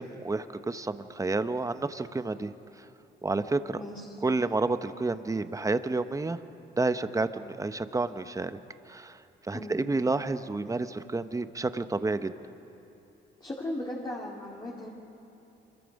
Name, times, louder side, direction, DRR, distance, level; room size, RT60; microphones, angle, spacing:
voice 1, 0.0-2.5 2.8-2.9 3.2-3.8 4.2-6.4 6.7-8.6 8.9-9.2 9.5-12.3, right 3 dB, 15° right, 11 dB, 0.8 m, -30 dB
voice 2, 3.7-4.2 9.5-9.8 13.4-14.9, left 1 dB, 20° left, -3 dB, 2.4 m, -37 dB
25.5 x 22.0 x 5.3 m, 3.0 s
cardioid pair, 90°, 20 cm